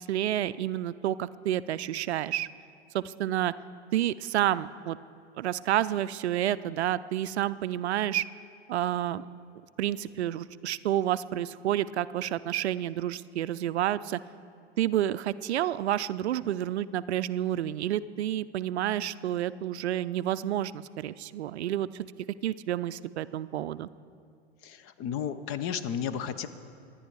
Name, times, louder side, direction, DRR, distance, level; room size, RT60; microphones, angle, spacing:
voice 1, 0.0-2.5 2.9-3.5 3.9-5.0 5.4-8.2 8.7-9.3 9.8-14.2 14.8-22.1 22.4-23.9, right 12 dB, 75° right, 16 dB, 0.5 m, -29 dB
voice 2, 24.6-26.5, left 8 dB, 40° left, 13 dB, 0.8 m, -33 dB
25.0 x 10.0 x 4.7 m, 2.4 s
figure-of-eight pair, 90°, 33 cm